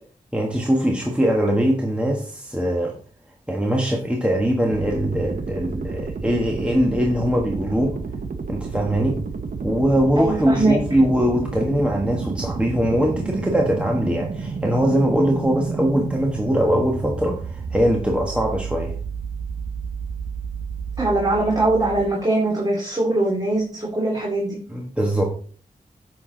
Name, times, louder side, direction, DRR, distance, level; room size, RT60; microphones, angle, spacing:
voice 1, 0.3-2.9 3.5-8.0 8.5-9.2 9.6-18.9 24.7-25.2, equal, 5° right, 0 dB, 1.4 m, -21 dB
sound 1, 4.7-22.1, right 5 dB, 60° right, 1.0 m, -31 dB
voice 2, 10.2-10.8 21.0-24.6, right 2 dB, 25° right, -4 dB, 2.5 m, -21 dB
9.5 x 6.0 x 3.9 m, 0.43 s
wide cardioid pair, 95°, 15 cm